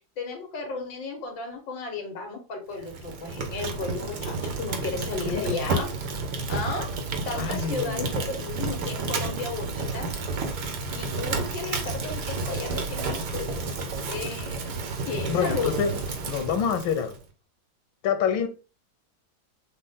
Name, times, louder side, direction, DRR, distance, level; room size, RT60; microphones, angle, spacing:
voice 1, 0.2-5.9 6.5-6.9 7.3-10.1 11.0-14.6 15.1-15.9, left 4 dB, 75° left, 1.9 m, -34 dB
Fire, 2.8-17.2, right 3 dB, 65° right, 1.4 m, -31 dB
voice 2, 5.3-5.7 7.3-8.1 15.3-15.9 16.3-17.2 18.0-18.5, left 7 dB, 90° left, 1.5 m, -27 dB
6.4 x 2.2 x 3.6 m
omnidirectional pair, 2.1 m